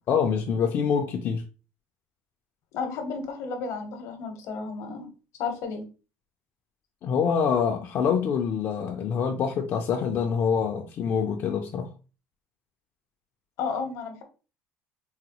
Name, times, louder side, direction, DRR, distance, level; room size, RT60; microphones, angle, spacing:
voice 1, 0.1-1.4 7.0-11.9, left 6 dB, 45° left, 0.4 m, -25 dB
voice 2, 2.7-5.1 5.4-5.8 13.6-14.2, left 5 dB, 65° left, 0.8 m, -32 dB
3.9 x 2.0 x 2.9 m
cardioid pair, 135°, 6 cm